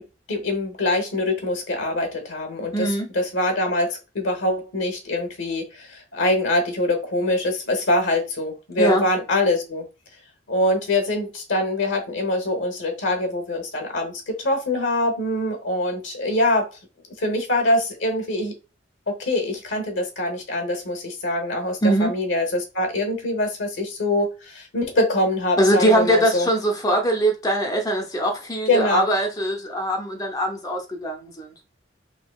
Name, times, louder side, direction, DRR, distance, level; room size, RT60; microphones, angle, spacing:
voice 1, 0.3-9.9 10.5-16.7 17.2-18.5 19.1-26.5 28.7-29.1, left 1 dB, 75° left, 1.0 m, -24 dB
voice 2, 2.7-3.1 8.8-9.1 21.8-22.1 25.6-31.5, right 1 dB, 20° left, 0.5 m, -22 dB
3.5 x 2.8 x 2.3 m
head